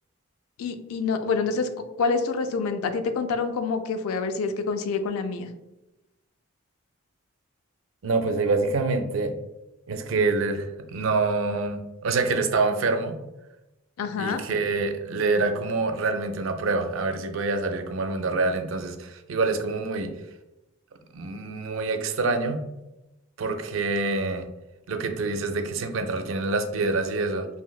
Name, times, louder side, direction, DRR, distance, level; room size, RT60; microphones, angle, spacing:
voice 1, 0.6-5.5 14.0-14.4, left 4 dB, 80° left, 8 dB, 0.3 m, -27 dB
voice 2, 8.0-9.4 9.9-13.2 14.2-20.1 21.1-22.6 23.4-24.5 24.9-27.5, right 3 dB, 65° right, 6 dB, 0.4 m, -26 dB
3.1 x 2.7 x 2.3 m, 0.97 s
head